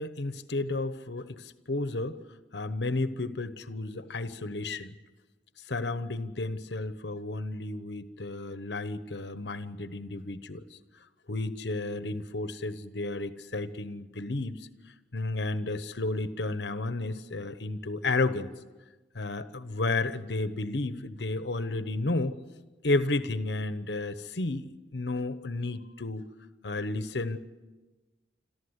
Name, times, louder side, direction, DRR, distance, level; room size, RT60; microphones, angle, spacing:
voice 1, 0.0-2.2 2.5-4.9 5.7-10.8 11.3-14.7 15.1-18.5 19.1-22.3 22.8-26.3 26.6-27.4, left 2 dB, 70° left, 12 dB, 1.0 m, -32 dB
26.0 x 14.5 x 8.1 m, 1.2 s
head